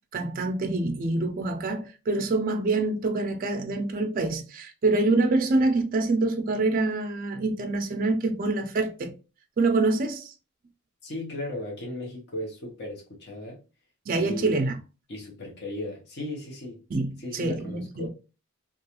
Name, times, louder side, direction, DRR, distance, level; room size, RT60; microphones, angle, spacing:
voice 1, 0.1-9.2 9.6-10.3 14.1-14.8 16.9-18.1, right 2 dB, 40° right, 0.3 m, -26 dB
voice 2, 11.0-13.6 14.2-14.7 15.1-16.8 17.2-18.1, left 1 dB, 50° left, 0.7 m, -36 dB
2.4 x 2.3 x 2.8 m
head